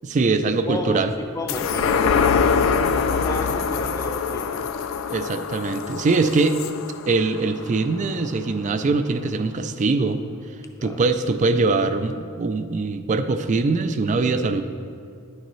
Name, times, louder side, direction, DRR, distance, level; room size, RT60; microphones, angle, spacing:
voice 1, 0.0-1.1 5.1-6.6 7.1-10.2 10.8-14.6, right 3 dB, 35° right, 10 dB, 0.3 m, -22 dB
voice 2, 0.7-2.3 2.9-4.8 10.8-11.0, left 1 dB, 15° left, 3 dB, 0.5 m, -31 dB
sound 1, 1.5-8.3 8.7-8.8, left 5 dB, 65° left, 0.3 m, -24 dB
10.0 x 6.5 x 3.1 m, 2.3 s
head